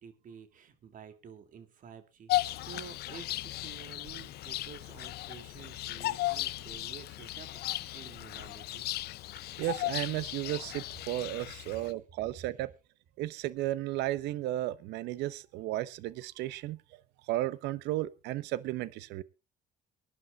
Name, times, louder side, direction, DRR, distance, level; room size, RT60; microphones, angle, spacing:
voice 1, 0.0-9.0 12.3-12.5, right 7 dB, 50° right, 10 dB, 2.7 m, -51 dB
Bird vocalization bird call bird song, 2.3-11.9, left 17 dB, 70° left, 0.6 m, -36 dB
voice 2, 9.6-12.7 13.2-16.8 17.3-19.2, right 15 dB, 90° right, 18 dB, 0.9 m, -34 dB
23.5 x 11.0 x 2.4 m, 0.29 s
cardioid pair, 110°, 17 cm